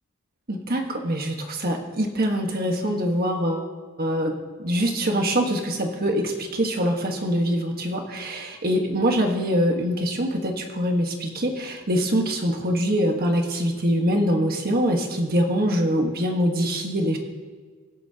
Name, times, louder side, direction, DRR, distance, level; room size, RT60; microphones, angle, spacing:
voice 1, 0.5-3.7 4.0-17.2, equal, 45° right, 3 dB, 1.5 m, -24 dB
24.0 x 8.4 x 2.9 m, 1.5 s
head